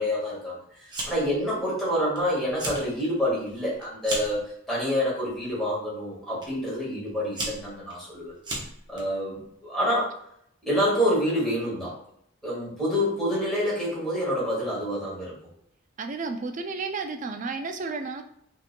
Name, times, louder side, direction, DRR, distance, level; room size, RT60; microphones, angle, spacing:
voice 1, 0.0-8.3 8.9-10.1 10.6-12.0 12.4-15.3, equal, ahead, -8 dB, 1.6 m, -27 dB
Fire, 0.9-1.4 1.7-2.2 2.5-2.9 3.3-4.4 5.2-5.5 6.4-6.5 7.1-9.0, right 1 dB, 20° right, 0.8 m, -34 dB
voice 2, 16.0-18.2, right 4 dB, 35° right, 6 dB, 0.4 m, -32 dB
5.7 x 3.0 x 2.2 m, 0.73 s
head